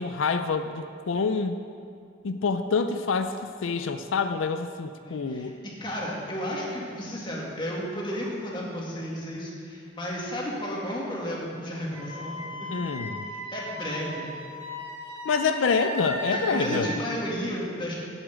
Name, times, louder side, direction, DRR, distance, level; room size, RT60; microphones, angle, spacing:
voice 1, 0.0-1.6 2.2-5.5 12.7-13.3 15.2-16.9, left 4 dB, 90° left, 8 dB, 0.4 m, -27 dB
voice 2, 5.0-5.5 5.8-12.7 13.3-14.3 16.3-18.0, equal, 25° left, -4 dB, 2.0 m, -33 dB
Wind instrument woodwind instrument, 11.9-17.0, equal, 30° right, 1.4 m, -36 dB
8.2 x 7.3 x 8.1 m, 2.4 s
head